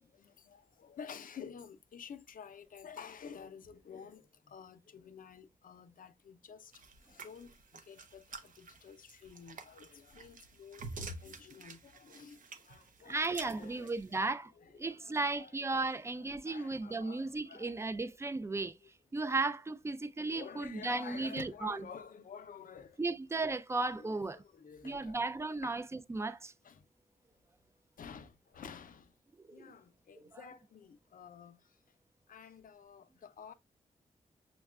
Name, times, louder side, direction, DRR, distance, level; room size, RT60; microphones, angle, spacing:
voice 1, 0.0-6.7 7.1-15.8 16.2-17.8 18.8-18.9 20.2-23.0 24.0-25.2 25.6-25.8 26.6-26.8 28.0-29.1 29.5-31.7 32.3-33.5, left 7 dB, 75° left, 0.5 m, -51 dB
sound 1, 6.7-14.2, right 3 dB, 75° right, 0.6 m, -49 dB
voice 2, 13.1-14.5 14.8-18.7 19.1-21.8 23.0-24.4 24.8-25.8 26.1-26.5 29.5-29.7, right 3 dB, 20° right, 0.3 m, -35 dB
6.2 x 2.3 x 2.3 m
wide cardioid pair, 100°, 14 cm